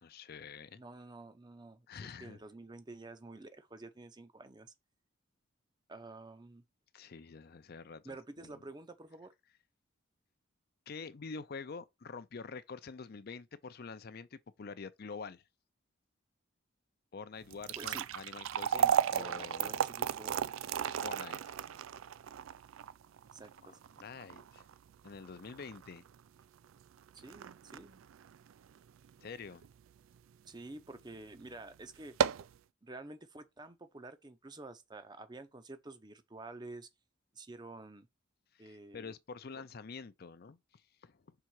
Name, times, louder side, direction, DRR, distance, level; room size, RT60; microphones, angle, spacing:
voice 1, 0.0-0.8 1.9-2.4 6.9-8.2 8.4-8.6 10.9-15.4 17.1-19.9 21.0-21.5 24.0-24.6 25.0-26.0 29.2-29.6 38.5-41.2, left 5 dB, 50° left, 0.5 m, -47 dB
voice 2, 0.8-4.7 5.9-6.6 8.0-9.3 17.8-18.1 18.7-20.5 23.3-23.8 27.1-28.0 30.5-32.2 32.8-36.9 37.3-38.1 38.6-39.1 39.6-39.7, right 2 dB, 20° right, 0.6 m, -49 dB
sound 1, 17.4-29.7 30.1-30.2 31.0-31.1 31.5-31.6 32.0-32.6, right 8 dB, 80° right, 0.4 m, -35 dB
5.7 x 3.7 x 4.7 m
head